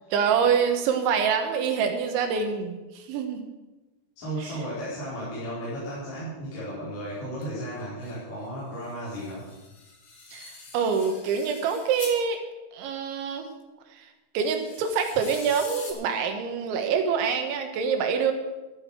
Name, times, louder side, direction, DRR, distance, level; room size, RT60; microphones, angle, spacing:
voice 1, 0.1-3.4 4.4-4.5 10.3-12.4 12.7-13.5 13.9-14.1 14.4-18.3, right 6 dB, 75° right, 5 dB, 3.5 m, -26 dB
voice 2, 4.2-9.4, right 1 dB, 40° left, -11 dB, 6.0 m, -34 dB
sound 1, 7.4-7.5 7.8-8.1 8.8-12.2 14.4-15.9, left 4 dB, 70° left, 1.2 m, -44 dB
13.5 x 9.7 x 6.2 m, 1.1 s
omnidirectional pair, 5.8 m